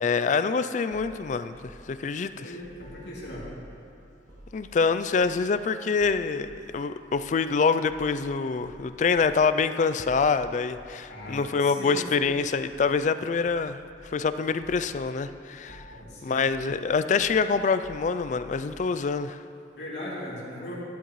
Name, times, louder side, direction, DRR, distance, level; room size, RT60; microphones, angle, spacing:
voice 1, 0.0-2.5 4.5-13.8 14.1-15.8 16.2-19.4, left 5 dB, 40° left, 11 dB, 0.3 m, -26 dB
sound 1, 0.9-3.7 4.2-4.5 5.2-5.6 6.0-6.6 7.1-7.3 7.9-8.2 8.6-9.4 10.0-10.4 10.7-10.9 11.2-11.4 12.2-12.9 13.5-14.2 14.6-14.9 15.2-15.4 15.7-16.1 16.5-16.8 17.2-18.8, equal, 65° right, 2.1 m, -49 dB
voice 2, 2.3-3.5 11.1-12.0 15.9-16.5 19.7-20.8, left 1 dB, 70° left, -6 dB, 2.7 m, -38 dB
12.0 x 11.5 x 3.1 m, 2.5 s
head